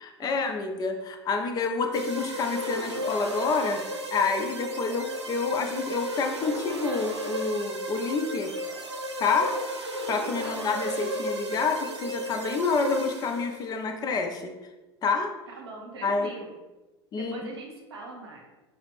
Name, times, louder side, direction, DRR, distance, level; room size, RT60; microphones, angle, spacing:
voice 1, 0.0-3.8 4.1-8.5 9.2-9.5 10.1-14.5 15.0-15.3 16.0-16.3 17.1-17.3, left 4 dB, 30° left, 4 dB, 0.5 m, -28 dB
sound 1, 1.9-13.7, equal, 85° right, 0.5 m, -34 dB
voice 2, 9.2-9.6 10.4-10.7 15.5-16.5 17.1-18.4, right 2 dB, 70° right, -1 dB, 1.1 m, -41 dB
5.4 x 2.4 x 3.4 m, 1.1 s
figure-of-eight pair, 80°, 14 cm